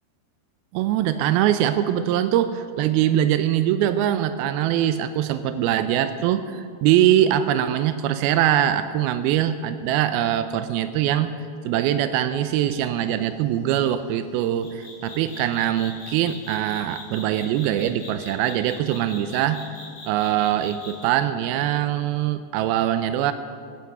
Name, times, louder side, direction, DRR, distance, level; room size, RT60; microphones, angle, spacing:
voice 1, 0.7-11.3 11.6-19.6 20.1-23.3, right 11 dB, 90° right, 11 dB, 2.1 m, -22 dB
sound 1, 12.7-12.9 14.6-21.1, left 3 dB, 45° left, 4.9 m, -41 dB
16.5 x 12.5 x 5.9 m, 2.1 s
omnidirectional pair, 5.0 m